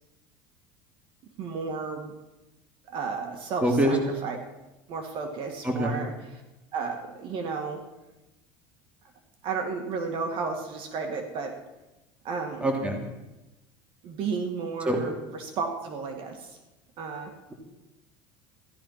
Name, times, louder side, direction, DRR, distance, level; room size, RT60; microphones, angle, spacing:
voice 1, 1.4-2.1 2.9-4.0 4.2-4.4 4.9-6.1 6.7-7.8 9.4-11.5 12.2-12.7 14.0-15.1 15.4-16.6 17.0-17.3, right 5 dB, 50° right, 4 dB, 2.1 m, -32 dB
voice 2, 3.6-4.0 5.6-6.0 12.6-13.0 14.8-15.0, right 1 dB, 10° right, 2 dB, 2.7 m, -24 dB
15.5 x 12.0 x 5.8 m, 1.0 s
cardioid pair, 135°, 11 cm